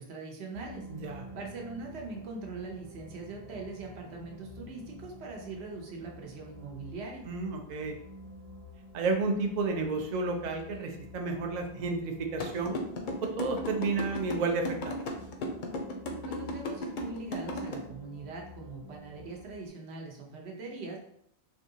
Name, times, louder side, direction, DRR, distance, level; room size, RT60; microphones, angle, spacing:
voice 1, 0.0-7.2 16.2-21.0, right 3 dB, 80° right, 0 dB, 1.0 m, -42 dB
sound 1, 0.5-19.7, left 2 dB, 35° right, 1.0 m, -49 dB
voice 2, 0.9-1.2 7.3-8.0 8.9-12.8 13.4-15.0, right 3 dB, 55° right, 3 dB, 0.5 m, -31 dB
sound 2, 12.4-17.7, left 2 dB, 60° left, 0.6 m, -35 dB
3.4 x 2.7 x 2.6 m, 0.70 s
omnidirectional pair, 1.1 m